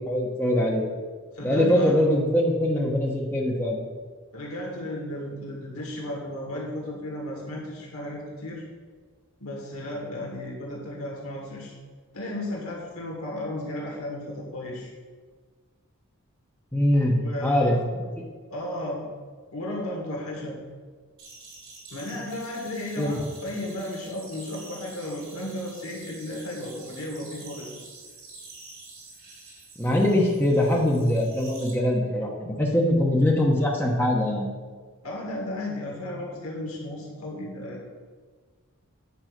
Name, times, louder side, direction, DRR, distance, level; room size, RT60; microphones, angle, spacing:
voice 1, 0.1-0.8 1.4-3.8 16.7-17.8 23.0-23.1 29.8-34.5, left 1 dB, 10° left, -2 dB, 1.0 m, -22 dB
voice 2, 1.3-2.0 4.3-8.6 9.4-11.7 12.1-14.9 17.2-17.8 18.5-19.1 19.5-20.6 21.9-27.9 35.0-37.8, left 1 dB, 75° left, -2 dB, 1.9 m, -34 dB
sound 1, 21.2-31.7, right 3 dB, 65° right, 2.7 m, -47 dB
9.2 x 4.9 x 6.6 m, 1.5 s
head